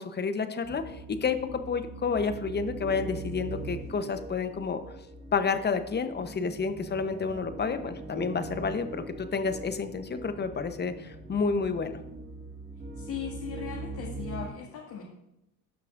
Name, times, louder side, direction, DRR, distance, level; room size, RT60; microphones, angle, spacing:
voice 1, 0.0-4.8 5.3-12.0, left 5 dB, 25° left, 9 dB, 0.9 m, -30 dB
sound 1, 0.6-14.5, right 2 dB, 25° right, 2.1 m, -41 dB
voice 2, 13.0-15.0, left 8 dB, 65° left, -3 dB, 2.1 m, -38 dB
15.5 x 5.9 x 2.6 m, 0.86 s
supercardioid pair, 80°, 40 cm